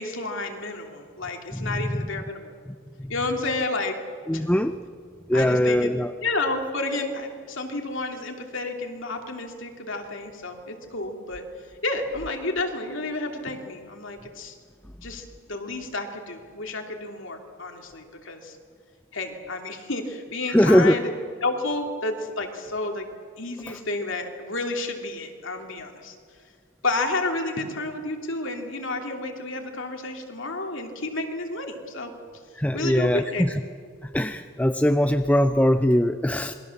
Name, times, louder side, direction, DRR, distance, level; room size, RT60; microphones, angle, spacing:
voice 1, 0.0-2.5 3.1-4.0 4.3-4.5 5.3-5.9 6.2-11.4 11.8-14.6 15.0-18.6 19.1-21.0 21.4-23.1 23.4-26.1 26.8-32.1 32.7-33.4, left 2 dB, 55° left, 4 dB, 2.9 m, -31 dB
voice 2, 1.5-2.1 3.0-3.1 4.3-4.7 5.3-6.1 20.5-21.0 23.7-23.8 32.6-33.6 34.0-36.5, equal, 5° left, 8 dB, 0.5 m, -21 dB
27.5 x 22.0 x 7.3 m, 2.2 s
head